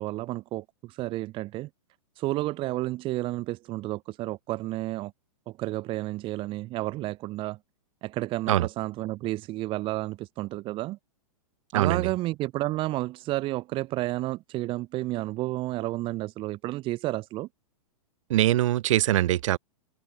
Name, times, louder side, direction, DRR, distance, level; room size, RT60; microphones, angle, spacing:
voice 1, 0.0-1.7 2.2-5.1 5.5-7.6 8.0-11.0 11.7-17.5, right 17 dB, 25° right, 2.3 m, -31 dB
voice 2, 11.7-12.1 18.3-19.6, right 14 dB, 60° right, 2.2 m, -23 dB
hypercardioid pair, 150°, 19 cm